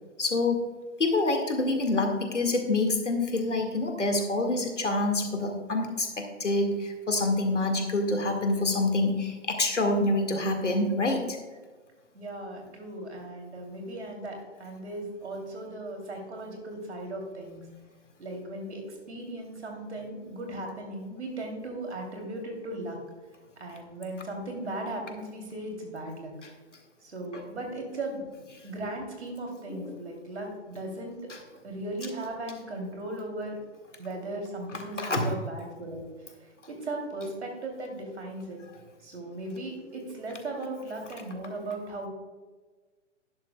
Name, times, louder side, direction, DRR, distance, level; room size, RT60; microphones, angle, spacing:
voice 1, 0.2-0.6 1.0-11.4 29.7-30.0 35.0-35.3, left 2 dB, 75° left, 4 dB, 2.0 m, -26 dB
voice 2, 12.1-17.6 18.2-23.0 23.6-26.3 27.0-31.2 31.6-33.6 34.0-38.6 39.0-42.1, right 1 dB, 65° right, 2 dB, 3.1 m, -37 dB
12.5 x 11.0 x 2.3 m, 1.3 s
figure-of-eight pair, 125°, 36 cm